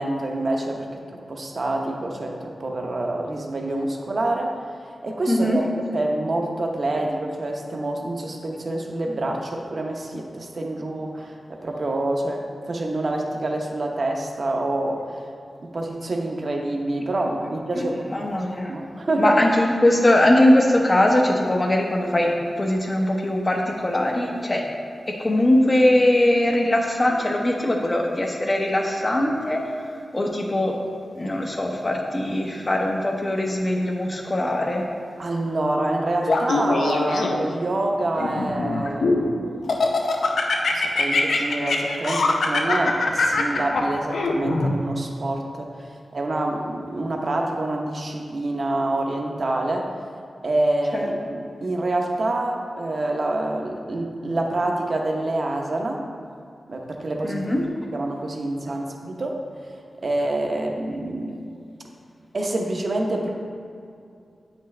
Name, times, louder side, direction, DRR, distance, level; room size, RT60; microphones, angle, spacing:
voice 1, 0.0-4.6 5.0-15.3 15.6-18.1 18.7-19.4 35.2-39.6 40.7-49.9 50.4-56.0 56.7-57.4 57.9-59.4 60.0-61.5 62.3-63.3, right 2 dB, 45° right, 1 dB, 0.8 m, -27 dB
voice 2, 5.3-5.6 17.8-18.7 19.2-24.6 25.1-29.6 30.1-30.8 31.2-34.8 50.9-51.1 57.2-57.7, left 1 dB, 25° left, 1 dB, 0.8 m, -21 dB
Laughter, 36.3-37.6 38.2-39.3 39.7-44.7, left 3 dB, 80° left, 0.7 m, -22 dB
8.6 x 5.9 x 3.3 m, 2.5 s
wide cardioid pair, 130°, 0 cm